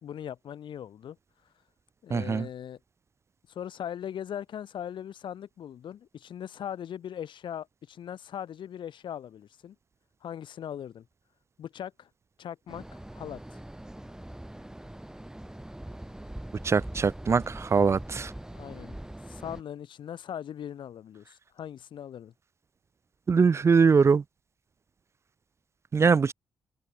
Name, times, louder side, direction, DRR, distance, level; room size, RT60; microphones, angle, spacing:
voice 1, 0.0-1.2 2.0-2.8 3.5-9.8 10.2-11.1 11.6-12.1 12.4-13.6 18.5-19.0 19.3-22.3, left 9 dB, 75° left, 2.2 m, -39 dB
voice 2, 2.1-2.4 16.6-18.3 23.3-24.2 25.9-26.3, right 5 dB, 35° right, 0.4 m, -22 dB
sound 1, 12.7-19.6, right 1 dB, 5° right, 5.7 m, -42 dB
open air
cardioid pair, 110°, 8 cm